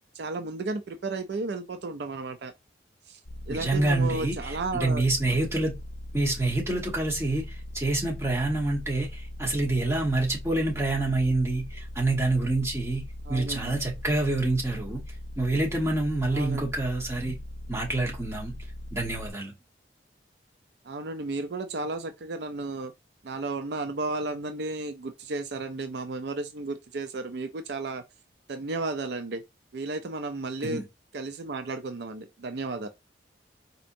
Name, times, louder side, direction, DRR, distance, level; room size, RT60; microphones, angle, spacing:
voice 1, 0.1-2.5 3.1-3.2 3.5-5.0 13.2-13.8 16.3-16.7 20.8-22.9 23.2-28.0 28.5-29.4 29.7-30.8 31.1-32.9, right 3 dB, 65° right, 0.4 m, -33 dB
sound 1, 3.2-19.3, left 1 dB, 60° left, 0.6 m, -40 dB
voice 2, 3.5-5.8 6.1-13.0 13.3-15.0 15.4-17.3 17.7-18.5 18.9-19.5 30.6-30.8, right 2 dB, 15° right, 1.1 m, -27 dB
4.3 x 2.8 x 2.6 m
head